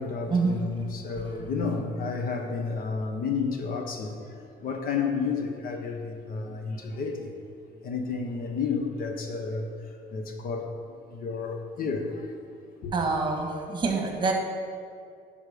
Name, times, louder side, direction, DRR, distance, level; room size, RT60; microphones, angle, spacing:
voice 1, 0.0-7.3 7.8-12.3 12.8-12.9, left 4 dB, 60° left, 1.1 m, -31 dB
voice 2, 12.9-14.3, right 4 dB, 30° right, 1.6 m, -26 dB
11.5 x 5.4 x 5.1 m
cardioid pair, 110°, 17 cm